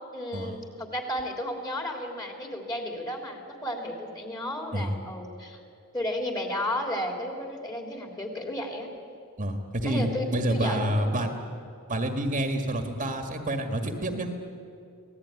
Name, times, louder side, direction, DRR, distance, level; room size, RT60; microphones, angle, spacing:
voice 1, 0.0-5.6 5.9-8.9 9.8-11.2, left 1 dB, 20° left, 2 dB, 3.3 m, -33 dB
voice 2, 9.4-11.3 11.9-14.3, right 1 dB, 35° right, 5 dB, 1.8 m, -28 dB
26.0 x 18.5 x 9.7 m, 2.4 s
head